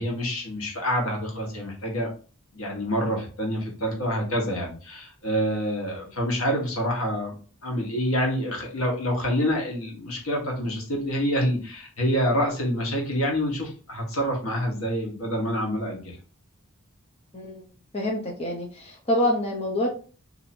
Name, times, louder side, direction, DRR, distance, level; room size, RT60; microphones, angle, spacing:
voice 1, 0.0-2.1 2.5-7.3 7.6-16.2, equal, 85° left, 0 dB, 1.3 m, -27 dB
voice 2, 17.3-17.7 17.9-19.9, left 1 dB, 25° left, -2 dB, 0.7 m, -26 dB
2.8 x 2.7 x 4.2 m, 0.38 s
head